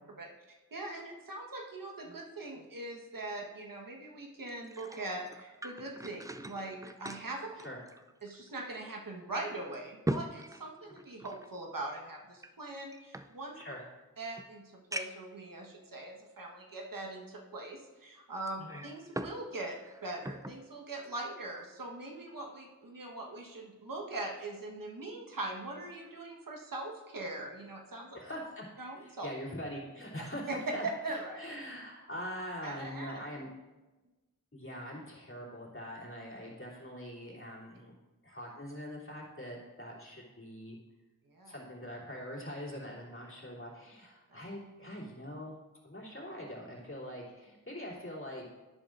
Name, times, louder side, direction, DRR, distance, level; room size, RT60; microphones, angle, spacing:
voice 1, 0.7-7.5 8.2-13.6 14.2-14.6 14.9-28.1 28.8-29.3 30.5-30.7 31.0-31.4 32.6-33.1 41.3-41.5 44.3-44.4, right 2 dB, 75° right, 0 dB, 1.3 m, -41 dB
sound 1, 4.5-8.5 8.8-8.9 9.5-11.5 12.4-13.8 14.4-14.5 14.9-15.3 16.1-16.2 18.5-19.4 19.7-20.6 21.0-21.2, right 1 dB, 10° right, 0.4 m, -41 dB
voice 2, 28.1-28.7 29.0-33.5 34.5-37.9 38.2-40.8 41.4-45.6 45.8-48.5, equal, 40° left, -5 dB, 3.0 m, -43 dB
10.5 x 10.5 x 2.5 m, 1.1 s
wide cardioid pair, 50°, 33 cm